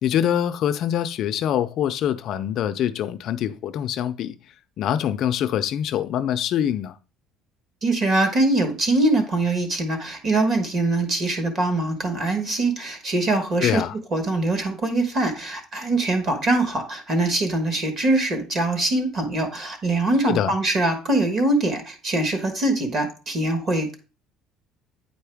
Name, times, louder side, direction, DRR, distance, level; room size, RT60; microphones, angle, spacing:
voice 1, 0.0-4.4 4.8-6.9 13.6-13.9 20.3-20.5, left 10 dB, 40° left, 0.4 m, -24 dB
voice 2, 7.8-13.8 14.1-23.9, right 2 dB, 30° right, 1.3 m, -23 dB
9.2 x 4.6 x 3.4 m
cardioid pair, 175°, 0 cm